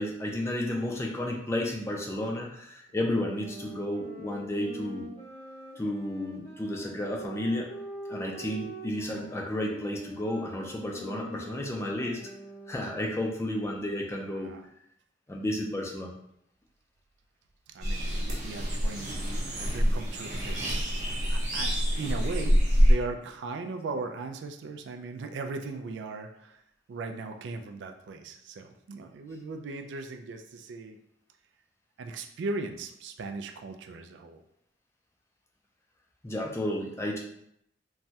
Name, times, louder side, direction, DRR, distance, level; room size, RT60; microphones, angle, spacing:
voice 1, 0.0-5.1 5.8-7.7 8.1-12.2 12.7-14.5 15.3-16.1 36.2-37.2, left 1 dB, 15° left, 0 dB, 0.4 m, -32 dB
sound 1, 3.3-13.2, equal, 60° left, 0.8 m, -44 dB
voice 2, 14.3-14.7 17.7-19.2 19.6-26.6 26.9-31.0 32.0-34.4, right 3 dB, 80° right, 6 dB, 0.3 m, -38 dB
sound 2, 17.8-22.9, equal, 40° right, 0.7 m, -26 dB
3.1 x 2.2 x 2.7 m, 0.75 s
head